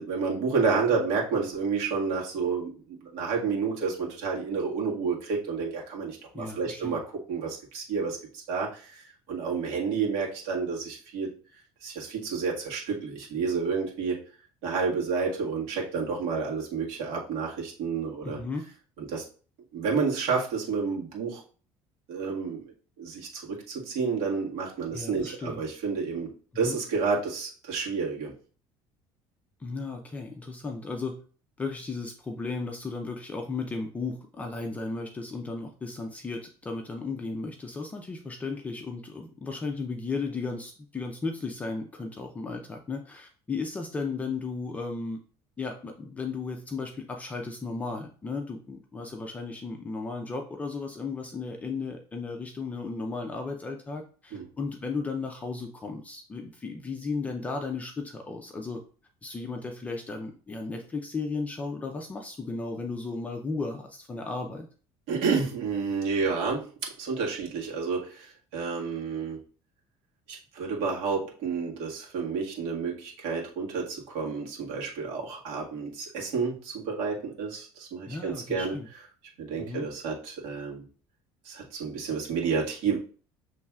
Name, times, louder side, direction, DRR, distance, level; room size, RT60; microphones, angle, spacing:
voice 1, 0.0-7.0 7.3-11.3 11.8-14.2 14.6-18.4 19.1-19.2 19.7-21.4 22.1-22.7 23.0-28.3 54.3-54.5 65.1-69.4 70.3-78.8 79.4-80.8 81.5-83.0, right 5 dB, 75° right, -2 dB, 1.7 m, -30 dB
voice 2, 6.3-7.0 18.2-18.6 24.9-25.6 26.6-26.8 29.6-31.2 31.6-45.2 45.6-58.8 59.2-64.7 78.1-78.9 79.6-79.9, left 4 dB, 15° left, 3 dB, 0.5 m, -35 dB
7.0 x 3.1 x 2.4 m, 0.40 s
cardioid pair, 160°, 10 cm